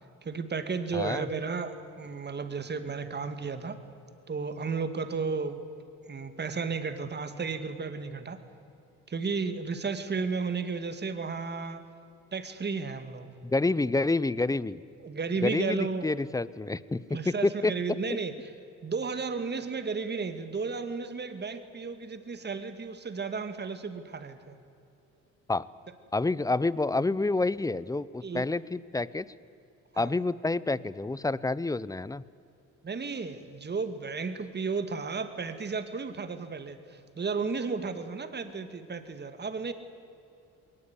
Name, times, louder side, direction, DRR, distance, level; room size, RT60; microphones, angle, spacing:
voice 1, 0.2-3.8 4.3-5.6 6.1-8.4 9.1-11.8 12.3-13.3 15.0-16.0 17.1-18.3 18.8-24.5 28.2-28.4 29.9-30.2 32.8-39.7, right 4 dB, 35° right, 10 dB, 2.2 m, -33 dB
voice 2, 0.9-1.3 13.4-14.8 15.4-17.7 25.5-25.7 26.1-29.3 30.0-32.2, left 2 dB, 10° left, 20 dB, 0.7 m, -28 dB
21.5 x 18.5 x 9.8 m, 2.7 s
cardioid pair, 90°, 30 cm